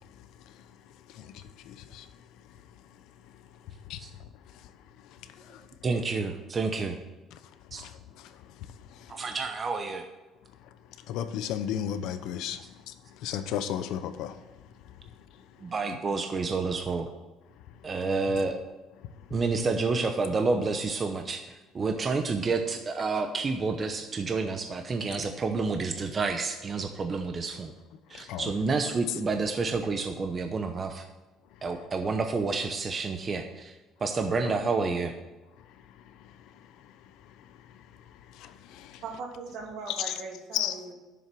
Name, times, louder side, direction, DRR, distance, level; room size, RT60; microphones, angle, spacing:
voice 1, 1.1-2.1 3.9-4.0 5.4-5.6 7.3-7.4 7.7-8.3 8.9-9.3 11.1-12.9 13.2-14.4 28.1-28.5 37.4-37.5 38.3-39.0 40.5-40.7, left 10 dB, 75° left, 0.9 m, -35 dB
voice 2, 5.8-7.0 7.7-7.8 9.1-10.1 15.6-17.1 17.8-18.6 19.3-27.7 28.1-31.0 31.6-33.7 34.0-35.1, right 4 dB, 30° right, 0.8 m, -29 dB
voice 3, 39.0-40.9, right 4 dB, 65° right, 2.8 m, -39 dB
10.5 x 7.2 x 6.2 m
cardioid pair, 120°, 0 cm